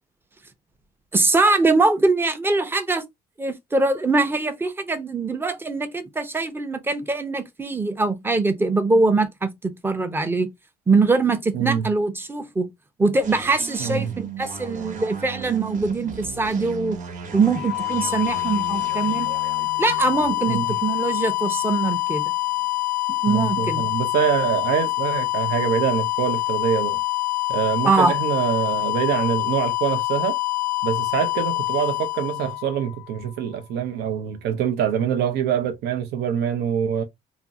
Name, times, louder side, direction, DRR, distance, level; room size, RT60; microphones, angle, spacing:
voice 1, 1.1-3.0 3.4-10.5 10.9-12.7 13.0-17.0 17.3-19.3 19.8-22.2 23.2-23.9 27.8-28.2, right 3 dB, 15° right, 0.5 m, -22 dB
voice 2, 11.5-11.9 13.8-14.1 20.5-20.6 23.3-27.0 27.5-30.4 30.8-37.0, right 8 dB, 75° right, 0.5 m, -25 dB
sound 1, 13.2-22.7, right 4 dB, 50° right, 0.9 m, -38 dB
sound 2, 17.4-33.2, left 19 dB, 70° left, 0.5 m, -25 dB
2.5 x 2.0 x 3.7 m
cardioid pair, 110°, 17 cm